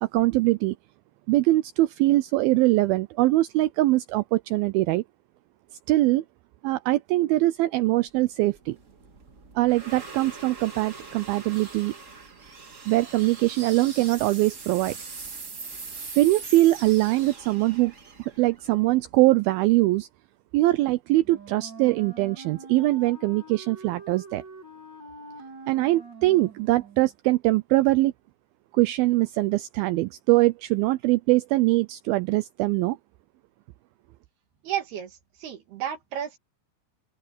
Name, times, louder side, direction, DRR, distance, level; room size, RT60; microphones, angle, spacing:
voice 1, 0.0-0.8 1.3-5.0 5.9-6.2 6.6-8.8 9.6-11.9 12.9-15.0 16.2-17.9 18.2-20.1 20.5-24.4 25.7-28.1 28.7-33.0, right 18 dB, 85° right, 2.2 m, -22 dB
sound 1, 8.1-19.4, right 4 dB, 50° right, 0.9 m, -42 dB
Wind instrument woodwind instrument, 21.2-27.1, right 3 dB, 30° right, 2.9 m, -44 dB
voice 2, 34.6-36.4, right 10 dB, 70° right, 3.9 m, -32 dB
omnidirectional pair, 4.8 m